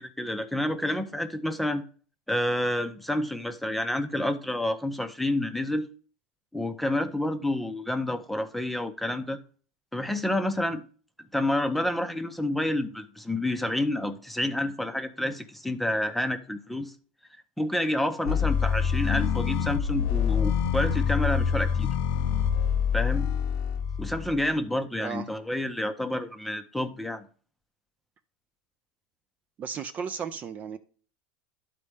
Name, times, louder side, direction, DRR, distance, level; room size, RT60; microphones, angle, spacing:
voice 1, 0.0-1.8 2.3-5.9 6.5-9.4 9.9-10.8 11.3-16.9 17.6-21.9 22.9-23.3 24.0-27.3, left 1 dB, ahead, 0.7 m, -29 dB
sound 1, 18.3-24.5, left 7 dB, 55° left, 0.6 m, -26 dB
voice 2, 29.6-30.8, right 6 dB, 30° right, 0.5 m, -34 dB
12.0 x 4.2 x 3.4 m
supercardioid pair, 135°, 5 cm